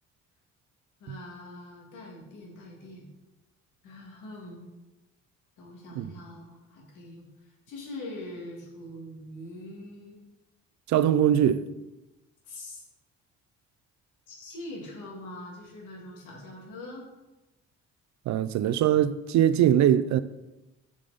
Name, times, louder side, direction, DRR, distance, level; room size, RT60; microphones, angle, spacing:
voice 1, 1.0-3.1 3.8-4.6 5.6-10.2 12.4-12.8 14.3-17.1, left 1 dB, 85° left, 2.0 m, -43 dB
voice 2, 10.9-11.6 18.3-20.2, right 10 dB, 65° right, 0.5 m, -22 dB
6.6 x 5.1 x 4.0 m
cardioid pair, 90°, 30 cm